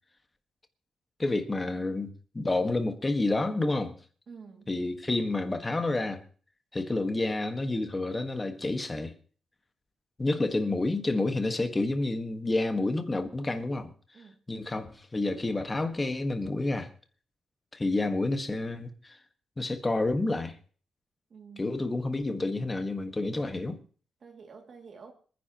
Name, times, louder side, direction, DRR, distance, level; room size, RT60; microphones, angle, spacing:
voice 1, 1.2-4.0 4.7-6.2 6.7-9.1 10.2-13.9 14.5-16.9 17.7-19.2 19.6-20.6 21.6-23.8, left 2 dB, 15° left, 1.5 m, -29 dB
voice 2, 4.3-4.7 14.1-14.4 21.3-21.9 24.2-25.1, right 5 dB, 45° right, 2.5 m, -49 dB
26.5 x 10.0 x 3.0 m
cardioid pair, 140°, 0 cm